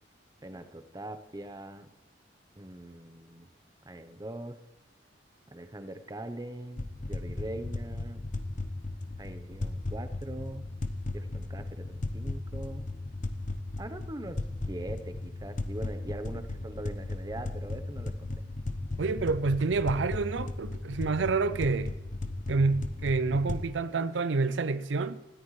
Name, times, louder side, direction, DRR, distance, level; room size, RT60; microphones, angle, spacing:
voice 1, 0.4-1.9 2.6-3.5 3.8-4.6 5.5-8.2 9.2-10.7 11.1-12.9 13.8-14.4 14.7-18.4, right 1 dB, 20° right, 0.9 m, -42 dB
sound 1, 6.8-23.6, left 2 dB, 45° left, 0.9 m, -36 dB
voice 2, 19.0-21.9 22.5-25.2, right 3 dB, 80° right, 0.5 m, -28 dB
19.5 x 14.0 x 3.2 m
head